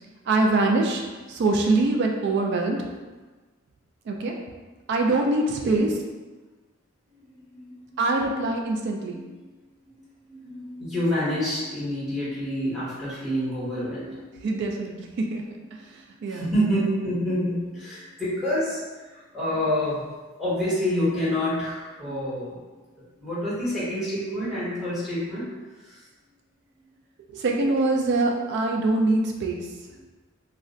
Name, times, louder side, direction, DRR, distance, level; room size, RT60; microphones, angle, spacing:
voice 1, 0.3-2.9 4.1-4.3 4.9-6.0 8.0-9.2 14.4-15.4 15.7-16.5 27.3-29.7, right 2 dB, 55° right, 2 dB, 0.3 m, -24 dB
voice 2, 7.1-8.0 9.1-9.4 9.8-14.4 15.8-20.1 20.4-22.6 23.0-25.5 25.8-26.0, equal, ahead, -11 dB, 1.2 m, -28 dB
2.4 x 2.1 x 3.7 m, 1.3 s
head